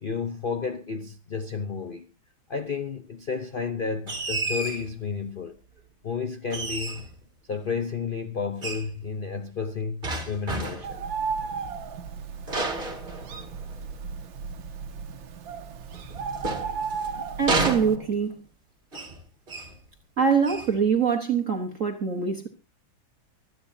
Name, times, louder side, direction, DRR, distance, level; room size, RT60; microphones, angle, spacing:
voice 1, 0.0-2.1 2.5-5.6 6.0-7.1 7.5-11.0 16.1-17.4, left 5 dB, 70° left, 0.5 m, -32 dB
sound 1, 4.1-4.9 6.5-7.2 8.6-8.9 10.0-11.0 12.5-13.7 15.9-17.1 17.5-18.4 18.9-19.2 19.5-19.8 20.4-20.7, right 2 dB, 25° right, 2.2 m, -31 dB
Bird, 10.8-18.0, right 5 dB, 70° right, 1.7 m, -34 dB
voice 2, 17.4-18.4 20.2-22.5, right 6 dB, 45° right, 1.5 m, -24 dB
24.5 x 9.5 x 2.7 m
omnidirectional pair, 2.2 m